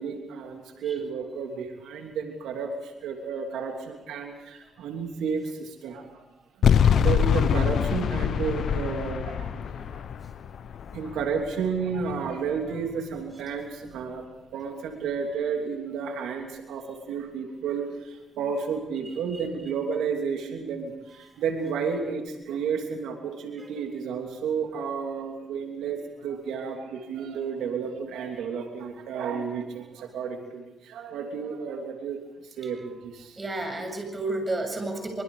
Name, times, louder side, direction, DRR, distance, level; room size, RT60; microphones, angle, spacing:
voice 1, 0.0-6.2 6.8-10.0 10.9-14.2 14.5-32.2 32.6-32.8 33.0-33.4, right 6 dB, 90° right, 2 dB, 3.1 m, -32 dB
sound 1, 6.6-11.8, left 8 dB, 65° left, 0.8 m, -24 dB
voice 2, 33.4-35.2, right 2 dB, 25° right, 4 dB, 7.4 m, -31 dB
25.0 x 24.5 x 5.1 m, 0.96 s
cardioid pair, 85°, 0 cm